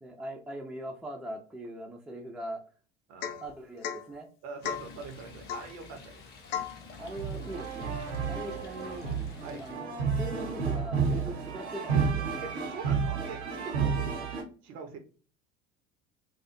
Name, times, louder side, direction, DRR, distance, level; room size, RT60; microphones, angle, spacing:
voice 1, 0.0-2.6 3.4-4.3 7.0-8.0 8.3-9.2 9.6-12.3 13.8-13.9, right 1 dB, ahead, 1 dB, 0.4 m, -41 dB
voice 2, 3.1-3.4 4.4-6.2 7.0-7.1 8.1-8.5 9.4-9.7 12.4-14.3 14.6-15.0, right 4 dB, 50° right, 6 dB, 0.7 m, -43 dB
Domestic sounds home sounds / Chink clink / Drip, 3.2-3.5 3.8-4.1 4.6-4.9 5.5-5.7 6.5-6.8, left 9 dB, 55° left, 0.5 m, -35 dB
Stream, 4.6-9.7, left 4 dB, 30° left, 0.8 m, -50 dB
sound 1, 7.0-14.4, right 5 dB, 75° right, 1.0 m, -31 dB
2.4 x 2.3 x 2.5 m, 0.38 s
figure-of-eight pair, 70°, 33 cm